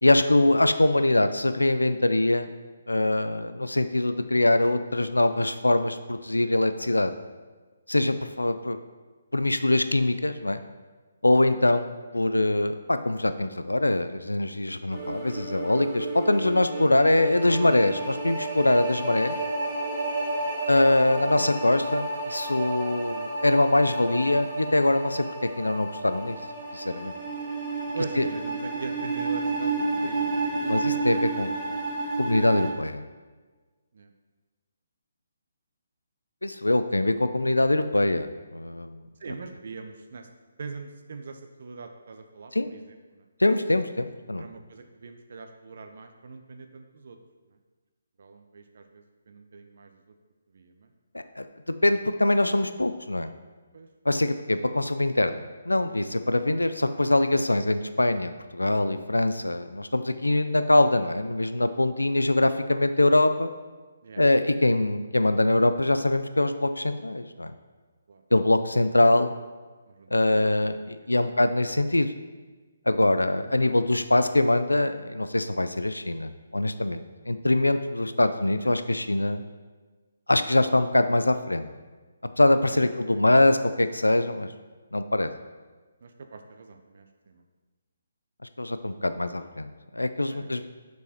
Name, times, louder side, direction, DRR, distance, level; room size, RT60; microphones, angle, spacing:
voice 1, 0.0-2.5 2.9-7.1 7.9-8.8 9.3-10.6 11.2-11.9 12.1-19.4 20.7-25.2 25.6-26.4 26.7-27.1 28.2-28.3 30.7-31.5 32.2-33.1 36.4-39.0 42.5-42.7 43.4-44.4 51.4-51.5 51.8-53.3 54.1-63.5 64.2-67.5 68.3-69.3 70.1-72.1 72.9-79.4 80.3-81.7 82.4-84.5 84.9-85.3 88.6-90.7, left 2 dB, 85° left, 10 dB, 0.4 m, -23 dB
sound 1, 14.9-32.7, right 3 dB, 10° right, 1.4 m, -31 dB
voice 2, 20.2-20.5 21.2-21.3 27.9-31.9 33.9-34.1 39.2-40.3 40.6-43.3 44.4-47.2 48.2-50.1 50.5-50.9 53.7-53.9 64.0-64.2 68.1-68.2 69.9-70.6 71.1-71.4 73.4-73.8 75.0-75.1 82.7-82.9 86.0-87.4 90.3-90.6, right 4 dB, 55° right, 6 dB, 0.7 m, -42 dB
6.9 x 4.7 x 4.2 m, 1.3 s
figure-of-eight pair, 140°, 0 cm